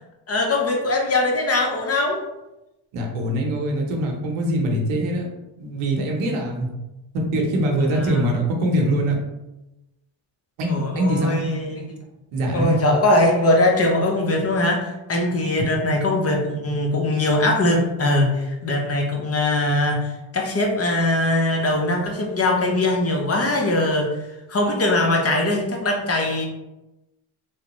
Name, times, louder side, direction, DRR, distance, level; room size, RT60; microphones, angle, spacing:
voice 1, 0.3-2.2 7.9-8.2 10.7-11.8 12.5-24.1 24.5-26.5, left 2 dB, 30° left, 1 dB, 0.7 m, -21 dB
voice 2, 2.9-5.3 5.6-6.7 7.1-9.2 10.6-11.4 12.3-12.8, right 1 dB, 80° right, 0 dB, 0.8 m, -23 dB
3.0 x 2.0 x 2.9 m, 0.97 s
supercardioid pair, 70°, 48 cm